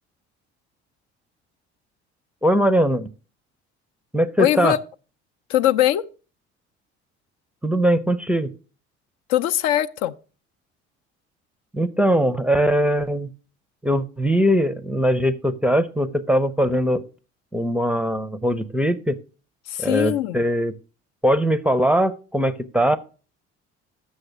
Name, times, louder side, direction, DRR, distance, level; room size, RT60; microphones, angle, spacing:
voice 1, 2.4-3.1 4.1-4.7 7.6-8.5 11.7-13.3 13.8-17.0 17.5-19.2 19.8-20.7 21.2-23.0, equal, 5° right, 0.5 m, -21 dB
voice 2, 4.4-4.8 5.5-6.0 9.3-10.1 19.7-20.4, left 13 dB, 55° left, 0.5 m, -21 dB
7.0 x 6.4 x 6.1 m
figure-of-eight pair, 55°, 34 cm